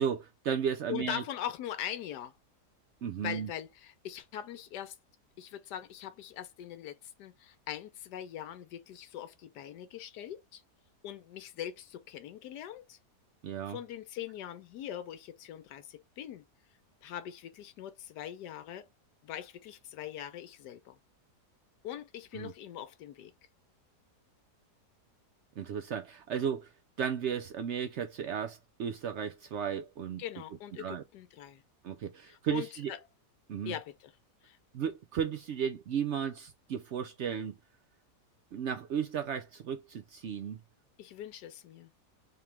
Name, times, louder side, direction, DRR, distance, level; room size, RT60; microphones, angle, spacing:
voice 1, 0.0-1.2 3.0-3.5 13.4-13.8 22.3-22.5 25.6-26.7 27.0-30.2 30.8-31.0 31.8-32.9 33.5-33.7 34.7-37.6 38.5-40.6, right 8 dB, 75° right, 0.6 m, -34 dB
voice 2, 0.9-2.3 3.2-5.0 5.4-10.6 11.0-13.0 13.7-16.4 17.0-18.9 19.2-21.0 21.8-23.3 30.2-31.6 32.3-33.0 33.7-34.1 34.4-34.6 41.0-41.9, left 11 dB, 80° left, 1.2 m, -42 dB
3.6 x 3.0 x 3.3 m
omnidirectional pair, 1.7 m